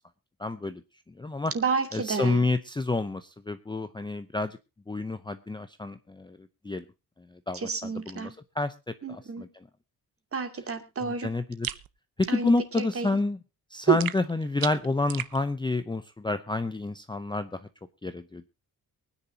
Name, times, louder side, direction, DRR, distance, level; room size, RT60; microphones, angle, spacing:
voice 1, 0.4-0.8 1.2-1.5 1.9-4.6 4.9-6.4 6.6-6.8 7.3-9.7 11.0-11.7 12.2-13.4 13.7-17.7 18.0-18.5, left 2 dB, 10° left, 10 dB, 0.6 m, -29 dB
voice 2, 1.5-2.4 7.6-8.3 9.0-9.4 10.3-11.3 12.3-12.5 12.8-13.1 13.9-14.0, right 6 dB, 35° right, 7 dB, 2.6 m, -29 dB
sound 1, 11.6-11.9 14.0-15.4, right 11 dB, 65° right, 0.9 m, -35 dB
23.5 x 10.0 x 2.8 m, 0.29 s
wide cardioid pair, 165°, 38 cm